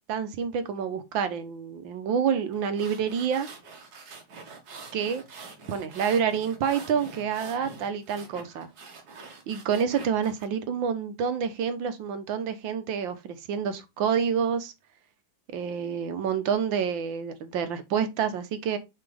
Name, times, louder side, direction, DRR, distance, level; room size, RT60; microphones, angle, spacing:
voice 1, 0.1-3.5 4.9-5.2 5.7-8.7 9.5-14.7 15.5-18.8, right 7 dB, 80° right, 1.7 m, -28 dB
sound 1, 2.5-10.5, right 4 dB, 55° right, 1.9 m, -45 dB
5.7 x 5.0 x 3.3 m
omnidirectional pair, 2.1 m